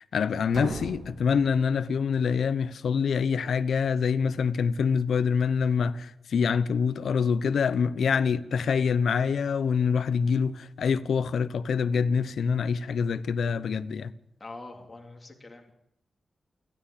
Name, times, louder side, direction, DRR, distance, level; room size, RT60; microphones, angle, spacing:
voice 1, 0.0-14.1, left 6 dB, 85° left, 1.0 m, -25 dB
sound 1, 0.5-2.4, right 2 dB, 60° right, 3.6 m, -39 dB
voice 2, 14.4-15.7, left 2 dB, 20° left, 3.0 m, -44 dB
29.5 x 12.5 x 8.8 m
wide cardioid pair, 170°, 0 cm